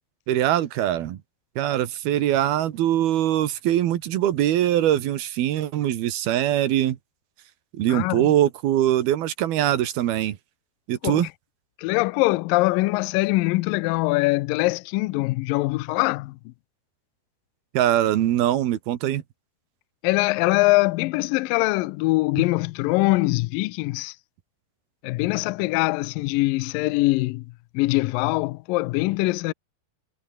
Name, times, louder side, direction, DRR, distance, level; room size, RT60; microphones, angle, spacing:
voice 1, 0.3-1.2 1.6-7.0 7.8-10.4 10.9-11.3 17.7-19.2, right 12 dB, 70° right, 3.3 m, -22 dB
voice 2, 7.9-8.3 11.0-11.3 11.8-16.5 20.0-24.2 25.0-27.5 27.7-29.5, left 22 dB, 85° left, 2.0 m, -23 dB
omnidirectional pair, 4.6 m